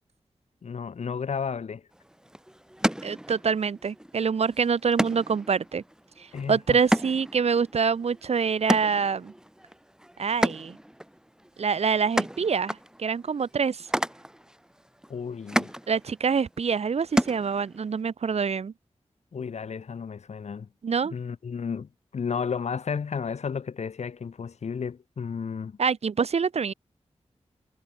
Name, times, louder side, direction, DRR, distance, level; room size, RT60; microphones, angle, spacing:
voice 1, 0.6-1.8 6.3-6.9 15.1-15.7 19.3-20.7 21.1-25.8, left 6 dB, 80° left, 1.7 m, -33 dB
sound 1, 1.9-18.0, equal, 5° right, 6.1 m, -33 dB
voice 2, 3.0-5.8 6.2-9.3 10.2-10.8 11.6-13.9 15.9-18.7 20.8-21.1 25.8-26.7, right 6 dB, 70° right, 1.0 m, -26 dB
wide cardioid pair, 105°, 11 cm